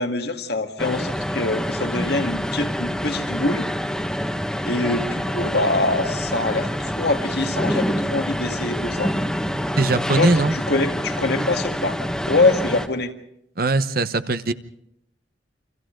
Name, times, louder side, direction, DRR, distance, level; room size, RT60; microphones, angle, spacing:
voice 1, 0.0-3.7 4.7-9.1 10.2-12.0 12.3-13.1, left 2 dB, 60° left, 6 dB, 2.1 m, -24 dB
sound 1, 0.8-12.9, equal, 5° left, 1.5 m, -26 dB
voice 2, 9.8-10.5 13.6-14.5, right 2 dB, 55° right, 11 dB, 1.1 m, -20 dB
29.5 x 26.5 x 3.9 m, 0.78 s
head